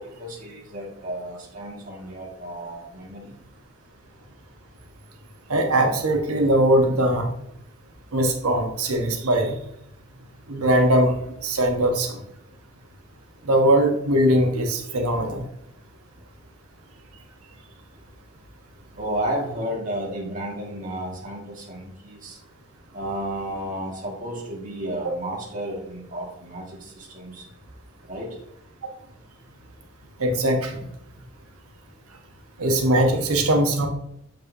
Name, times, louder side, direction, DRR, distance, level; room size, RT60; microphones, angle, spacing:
voice 1, 0.0-3.4 19.0-22.4 22.9-27.4 28.0-28.3, right 1 dB, 35° right, -3 dB, 1.8 m, -32 dB
voice 2, 5.5-7.3 8.1-9.6 10.5-11.1 11.4-12.2 13.4-15.4 30.2-30.8 32.6-33.9, right 1 dB, 90° right, 3 dB, 1.1 m, -20 dB
7.6 x 5.2 x 2.7 m, 0.78 s
head